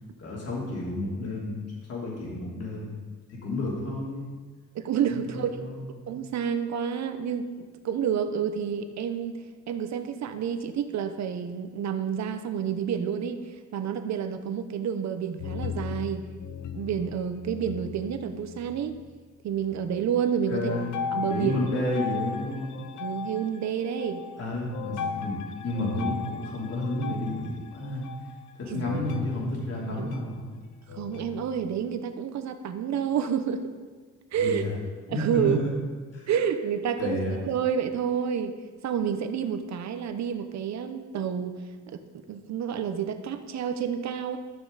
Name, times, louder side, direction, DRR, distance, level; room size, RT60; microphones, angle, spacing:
voice 1, 0.2-1.5 1.9-2.9 3.3-4.3 5.1-5.9 20.5-20.9 21.2-22.7 24.4-28.0 28.6-30.5 34.4-34.8 35.1-35.7 36.1-36.3 37.0-37.3, left 1 dB, 55° left, -4 dB, 3.1 m, -31 dB
voice 2, 4.7-5.6 6.1-7.5 7.8-9.4 9.7-13.4 13.7-16.2 16.7-18.9 19.4-20.7 21.1-21.6 23.0-24.2 28.7-29.0 29.9-30.1 30.9-33.8 34.3-34.6 35.1-35.6 36.3-38.6 38.8-41.6 41.9-42.0 42.3-44.4, right 8 dB, 65° right, 8 dB, 0.9 m, -29 dB
sound 1, 15.4-19.2 19.5-20.1 20.7-32.0, left 6 dB, 75° left, 0.7 m, -38 dB
12.5 x 6.2 x 4.0 m, 1.4 s
cardioid pair, 90°, 30 cm